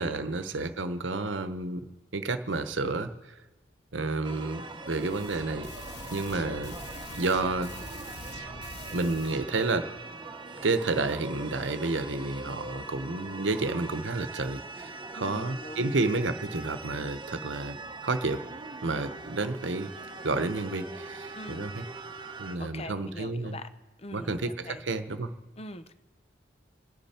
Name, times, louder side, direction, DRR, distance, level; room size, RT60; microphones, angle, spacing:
voice 1, 0.0-1.8 2.1-3.1 3.9-5.7 6.1-6.7 7.1-7.7 8.9-9.9 10.6-17.8 18.0-18.4 18.8-19.9 20.2-21.8 22.4-23.6 24.1-25.3, right 3 dB, 85° right, 10 dB, 1.0 m, -30 dB
sound 1, 4.2-22.6, right 3 dB, 25° right, 1.0 m, -42 dB
sound 2, 4.9-9.8, left 2 dB, 60° left, 1.5 m, -45 dB
voice 2, 6.2-6.6 15.1-16.0 21.3-21.6 22.6-23.7 24.0-24.8 25.6-25.9, left 1 dB, 35° left, 10 dB, 0.8 m, -43 dB
28.0 x 10.5 x 4.4 m, 1.1 s
head